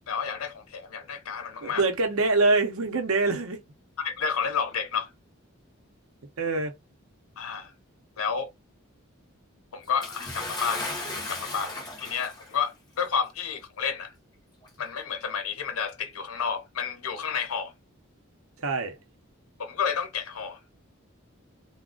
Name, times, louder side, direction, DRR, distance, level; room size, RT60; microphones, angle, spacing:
voice 1, 0.1-1.8 4.0-5.1 7.4-7.7 8.2-8.5 9.7-14.1 14.8-17.7 19.6-20.6, left 6 dB, 85° left, 0.7 m, -31 dB
voice 2, 1.6-3.6 6.4-6.7 18.6-19.0, right 3 dB, 80° right, 0.8 m, -24 dB
Bathtub (filling or washing) / Splash splatter, 10.0-12.6 13.5-13.6 14.6-14.7, left 2 dB, 20° left, 0.8 m, -35 dB
2.4 x 2.2 x 3.7 m
head